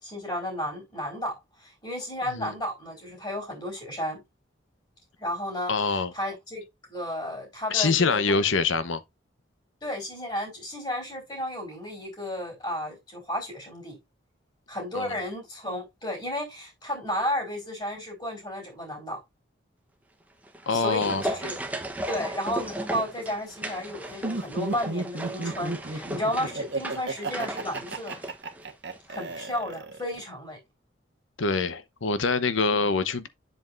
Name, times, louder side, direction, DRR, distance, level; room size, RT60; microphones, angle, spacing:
voice 1, 0.0-4.2 5.2-5.7 6.1-6.6 6.9-8.5 9.8-14.0 14.7-19.2 20.7-21.6 22.1-28.2 29.1-30.6 32.7-32.8, left 1 dB, 25° left, 4.0 m, -33 dB
voice 2, 5.7-6.1 7.7-9.0 14.9-15.1 20.7-21.2 31.4-33.3, left 4 dB, 85° left, 0.8 m, -25 dB
sound 1, 20.4-29.1 29.3-29.4, right 1 dB, 10° right, 0.9 m, -36 dB
Laughter, 24.2-30.2, right 3 dB, 60° right, 1.3 m, -33 dB
7.9 x 7.6 x 2.5 m
head